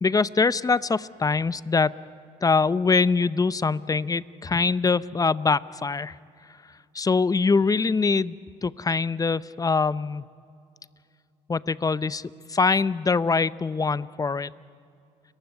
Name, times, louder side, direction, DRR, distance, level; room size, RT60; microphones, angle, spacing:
voice 1, 0.0-2.0 2.4-6.2 6.9-10.3 11.5-14.5, left 4 dB, 20° left, 18 dB, 0.7 m, -23 dB
29.5 x 15.5 x 9.8 m, 2.4 s
supercardioid pair, 65°, 16 cm